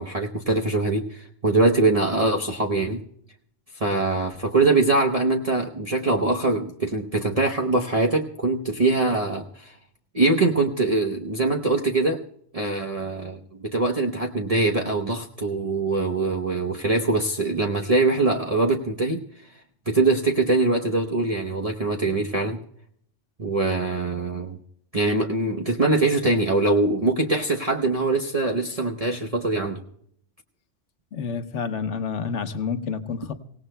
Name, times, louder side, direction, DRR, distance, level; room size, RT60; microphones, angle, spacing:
voice 1, 0.0-3.0 3.8-9.7 10.1-12.2 12.5-19.2 19.9-22.6 23.4-24.6 24.9-29.8, right 2 dB, 35° right, 0 dB, 0.9 m, -23 dB
voice 2, 31.1-33.3, left 6 dB, 75° left, 9 dB, 1.3 m, -29 dB
25.0 x 17.5 x 2.2 m, 0.67 s
omnidirectional pair, 1.2 m